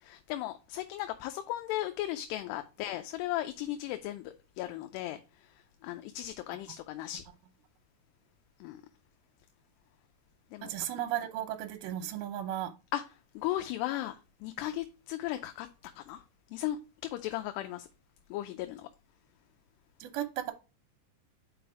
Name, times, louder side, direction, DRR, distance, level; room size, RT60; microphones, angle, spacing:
voice 1, 0.0-5.2 5.8-7.2 8.6-8.8 10.5-10.7 12.9-13.0 13.4-16.2 16.5-16.8 17.1-17.9 18.3-18.9, left 14 dB, 85° left, 2.7 m, -36 dB
voice 2, 10.6-12.7 20.0-20.5, right 12 dB, 75° right, 2.4 m, -35 dB
5.3 x 5.2 x 4.7 m
omnidirectional pair, 4.9 m